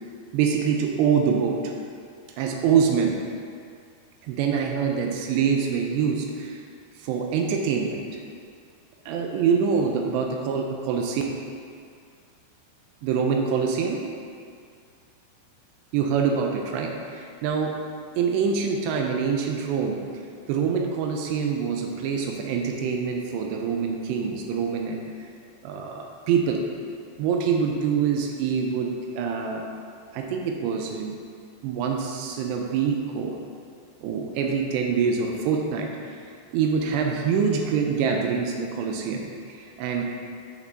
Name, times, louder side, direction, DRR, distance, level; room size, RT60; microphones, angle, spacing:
voice 1, 0.3-1.7 2.4-3.2 4.2-6.6 7.0-8.0 9.1-11.2 13.0-14.0 15.9-17.7 18.2-20.0 20.5-25.0 25.6-26.6 27.2-29.7 30.1-31.2 31.6-33.4 34.0-36.2 36.5-40.0, right 6 dB, 85° right, 2 dB, 2.5 m, -25 dB
9.1 x 5.4 x 4.0 m, 2.3 s
omnidirectional pair, 5.6 m